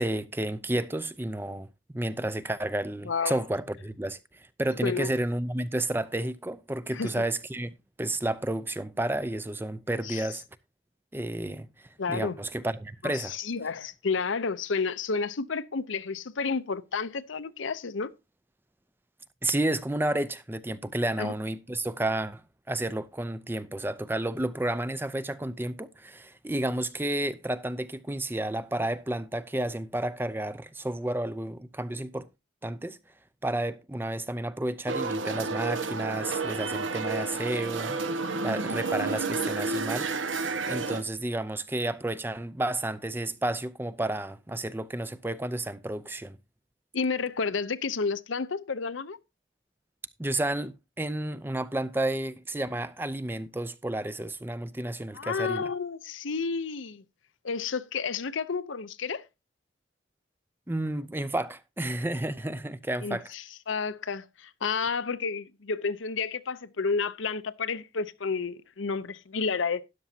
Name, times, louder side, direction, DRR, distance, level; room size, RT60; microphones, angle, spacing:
voice 1, 0.0-1.7 1.9-7.7 8.0-10.4 11.1-13.4 19.4-22.4 22.7-32.3 32.6-33.0 33.4-40.1 40.7-46.4 50.2-55.7 60.7-63.3, right 1 dB, 10° right, 0.5 m, -31 dB
voice 2, 3.0-3.4 4.8-5.1 6.9-7.1 10.0-10.3 12.0-12.4 13.0-18.1 21.2-21.3 46.9-49.2 55.1-57.0 57.4-59.2 63.0-69.8, left 5 dB, 75° left, 0.7 m, -31 dB
sound 1, 34.9-41.0, right 3 dB, 75° right, 1.3 m, -30 dB
13.0 x 10.5 x 2.8 m
head